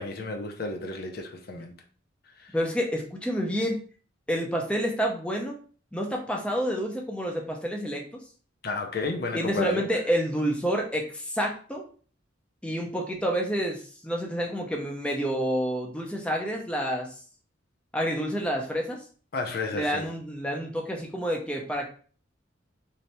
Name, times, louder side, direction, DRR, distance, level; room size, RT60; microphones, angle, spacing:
voice 1, 0.0-1.7 2.4-2.6 8.6-9.9 19.3-20.1, left 3 dB, 55° left, 0.5 m, -32 dB
voice 2, 2.5-3.8 4.3-5.6 5.9-8.0 9.3-11.8 12.6-17.1 17.9-19.0 19.7-21.9, equal, 5° left, 0.6 m, -28 dB
3.3 x 2.7 x 4.1 m
head